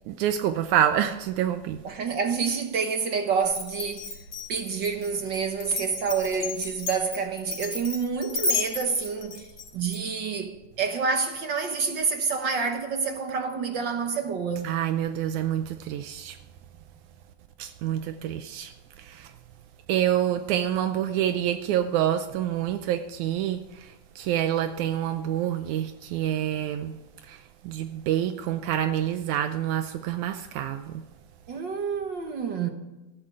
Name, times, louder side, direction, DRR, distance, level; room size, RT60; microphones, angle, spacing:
voice 1, 0.1-1.8 14.6-16.4 17.6-18.7 19.0-19.3 19.9-23.9 24.2-26.9 27.3-27.4 27.6-30.9, right 11 dB, 80° right, 2.0 m, -27 dB
voice 2, 1.8-4.1 4.5-9.5 9.7-14.8 31.5-32.7, right 5 dB, 55° right, 1.3 m, -28 dB
Glass, 3.5-10.0, left 3 dB, 45° left, 3.2 m, -32 dB
14.5 x 12.0 x 7.6 m
omnidirectional pair, 3.5 m